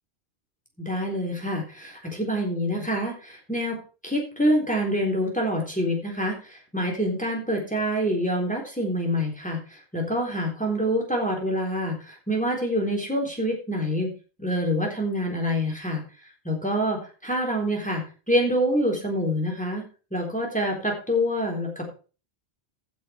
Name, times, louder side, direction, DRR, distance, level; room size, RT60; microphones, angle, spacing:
voice 1, 0.8-3.8 4.0-9.6 9.9-14.1 14.4-16.0 16.5-19.8 20.1-21.8, equal, 5° left, 0 dB, 3.8 m, -26 dB
15.5 x 6.9 x 4.5 m, 0.35 s
omnidirectional pair, 1.1 m